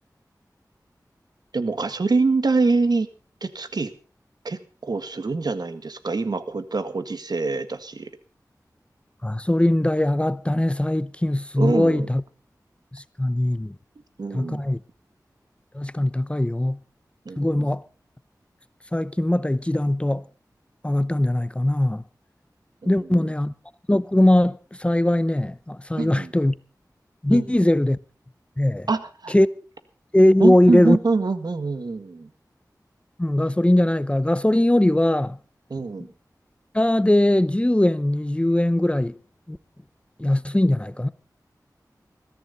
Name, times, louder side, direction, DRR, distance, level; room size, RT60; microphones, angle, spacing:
voice 1, 1.5-3.1 3.4-3.9 4.4-8.1 11.6-12.1 14.2-14.6 17.3-17.7 22.8-23.2 26.0-26.3 27.3-27.4 28.9-29.3 30.4-32.3 35.7-36.1, right 3 dB, 75° right, 1.7 m, -25 dB
voice 2, 9.2-12.2 12.9-13.7 14.3-14.8 15.7-16.8 17.4-17.8 18.9-20.2 20.8-22.0 22.9-23.5 23.9-26.5 27.2-28.0 28.6-28.9 29.3-29.5 30.1-31.0 33.2-35.4 36.7-39.1 39.5-39.6 40.2-41.1, left 1 dB, 15° left, 0.7 m, -20 dB
21.5 x 14.0 x 4.1 m
wide cardioid pair, 65°, 7 cm